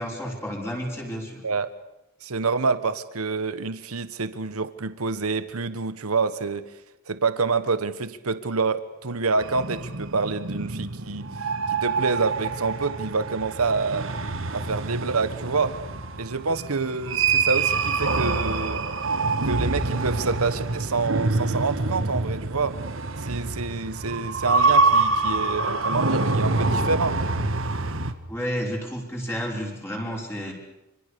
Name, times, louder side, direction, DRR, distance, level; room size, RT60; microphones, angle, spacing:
voice 1, 0.0-1.4 28.3-30.5, equal, 10° left, -1 dB, 5.6 m, -31 dB
voice 2, 2.2-6.7 7.1-11.3 11.7-14.1 14.5-15.8 16.2-18.8 19.4-22.8 23.2-27.2, right 4 dB, 85° right, 12 dB, 1.2 m, -27 dB
sound 1, 9.4-28.1, right 3 dB, 65° right, 1.8 m, -26 dB
27.0 x 26.0 x 6.9 m, 0.91 s
head